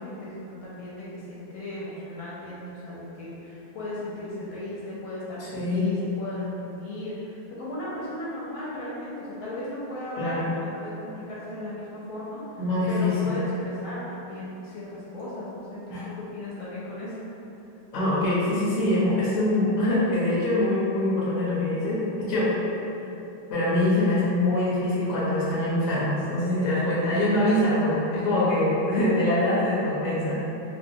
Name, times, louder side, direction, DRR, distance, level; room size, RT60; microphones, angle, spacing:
voice 1, 0.0-12.6 12.9-17.2, left 1 dB, 75° left, -8 dB, 1.3 m, -36 dB
voice 2, 5.5-6.0 10.2-10.5 12.6-13.3 15.9-16.0 17.9-22.5 23.5-30.4, left 1 dB, 55° left, -9 dB, 1.0 m, -24 dB
3.7 x 2.1 x 2.7 m, 2.9 s
omnidirectional pair, 2.3 m